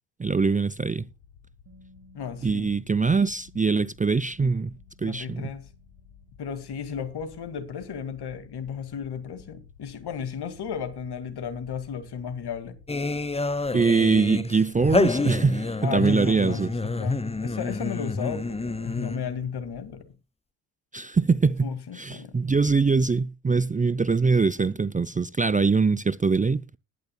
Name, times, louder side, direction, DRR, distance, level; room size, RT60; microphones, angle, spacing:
voice 1, 0.2-1.1 2.4-4.7 5.0-5.5 13.7-16.7 20.9-21.7 22.0-26.8, right 4 dB, 20° right, 0.6 m, -23 dB
sound 1, 0.8-20.0, left 7 dB, 85° left, 1.8 m, -54 dB
Bass guitar, 1.7-7.9, left 1 dB, 65° right, 2.4 m, -59 dB
voice 2, 2.1-2.7 5.0-5.7 6.4-12.8 15.8-20.1 21.6-22.4, left 7 dB, 60° left, 2.2 m, -34 dB
sound 2, 12.9-19.4, left 3 dB, 15° left, 0.9 m, -28 dB
20.0 x 10.5 x 2.3 m
hypercardioid pair, 45°, 44 cm